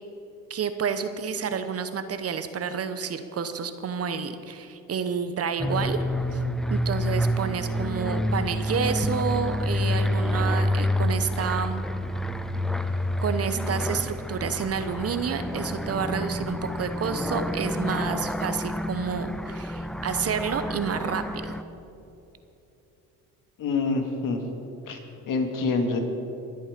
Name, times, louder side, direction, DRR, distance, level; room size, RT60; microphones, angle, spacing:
voice 1, 0.5-6.0 6.3-6.4 6.7-11.8 13.2-21.6, right 6 dB, 40° right, 10 dB, 1.0 m, -29 dB
sound 1, 5.6-21.6, left 1 dB, ahead, 0.5 m, -28 dB
voice 2, 23.6-24.4 24.9-25.0 25.3-26.0, left 4 dB, 60° left, 4 dB, 2.2 m, -26 dB
22.5 x 8.4 x 5.2 m, 2.9 s
supercardioid pair, 90°, 37 cm